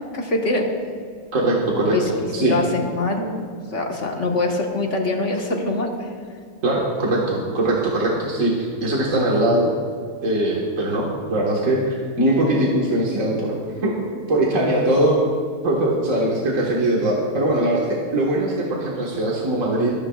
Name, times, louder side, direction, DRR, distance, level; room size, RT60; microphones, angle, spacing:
voice 1, 0.1-0.7 1.9-2.1 2.4-6.1, left 2 dB, 50° left, 1 dB, 1.7 m, -24 dB
voice 2, 1.3-2.6 6.6-9.7 10.2-13.6 13.8-15.2 15.6-17.9 18.1-19.9, right 1 dB, 60° right, -4 dB, 2.0 m, -21 dB
18.0 x 14.5 x 2.4 m, 2.1 s
omnidirectional pair, 1.6 m